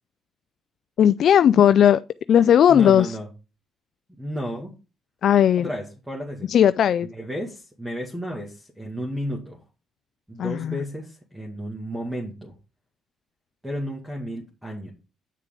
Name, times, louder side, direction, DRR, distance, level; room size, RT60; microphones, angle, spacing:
voice 1, 1.0-2.0 2.3-3.2 5.2-5.7 6.5-7.1 10.4-10.8, left 9 dB, 60° left, 0.3 m, -17 dB
voice 2, 2.7-3.3 4.2-4.7 5.6-6.5 7.1-9.6 10.3-12.5 13.6-14.9, equal, 5° right, 2.1 m, -32 dB
8.6 x 6.5 x 3.8 m
cardioid pair, 90°, 0 cm